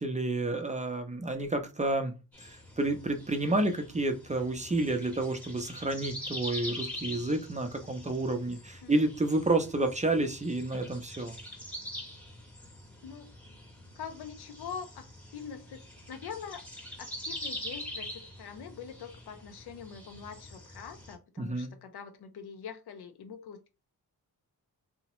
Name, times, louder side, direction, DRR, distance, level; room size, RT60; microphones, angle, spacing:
voice 1, 0.0-11.3 21.4-21.7, right 2 dB, 20° right, 0.4 m, -30 dB
sound 1, 2.3-21.1, left 1 dB, 5° left, 0.8 m, -44 dB
voice 2, 14.0-15.0 15.3-16.6 17.0-23.7, left 7 dB, 80° left, 0.6 m, -44 dB
2.8 x 2.0 x 2.9 m
cardioid pair, 80°, 38 cm